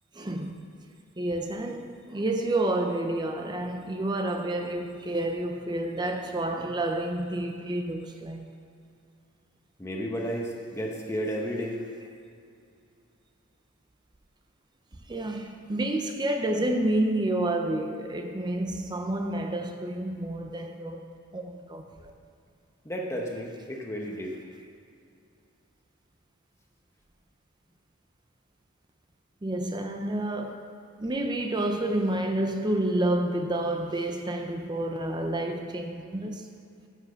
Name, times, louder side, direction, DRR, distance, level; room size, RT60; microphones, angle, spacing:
voice 1, 0.2-0.5 1.2-8.5 15.1-21.0 21.3-22.1 29.4-30.6 31.0-36.5, right 1 dB, 20° right, 0.6 m, -29 dB
voice 2, 9.8-11.8 22.8-24.4, equal, 10° left, 1.0 m, -32 dB
10.0 x 6.0 x 6.8 m
head